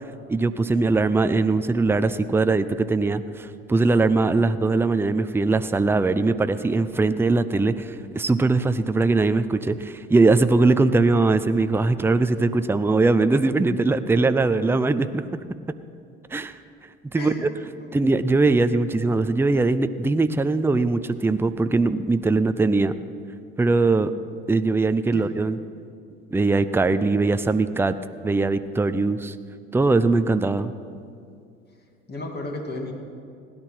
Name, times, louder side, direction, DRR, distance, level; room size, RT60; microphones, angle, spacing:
voice 1, 0.3-15.2 16.3-16.5 17.1-17.5 17.9-22.9 23.6-24.1 24.5-25.6 26.3-28.0 28.2-29.3 29.7-30.7, right 3 dB, 10° right, 12 dB, 0.6 m, -21 dB
voice 2, 17.1-18.0 25.1-25.3 32.1-32.9, left 1 dB, 35° left, 2 dB, 2.6 m, -33 dB
17.0 x 10.5 x 6.0 m, 2.4 s
hypercardioid pair, 65°, 29 cm